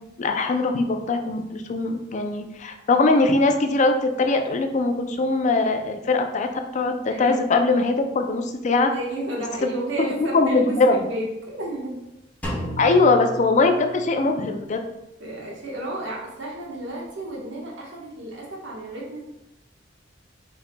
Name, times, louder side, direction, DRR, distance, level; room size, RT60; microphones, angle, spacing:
voice 1, 0.2-8.9 9.6-9.7 10.3-11.0 12.8-14.8, left 3 dB, 40° left, 5 dB, 0.4 m, -21 dB
voice 2, 8.9-10.8 11.1-12.0 15.2-19.2, right 1 dB, 85° right, -3 dB, 1.2 m, -32 dB
Drum, 12.4-14.3, equal, 10° left, 0.9 m, -33 dB
4.6 x 3.9 x 2.2 m, 0.92 s
head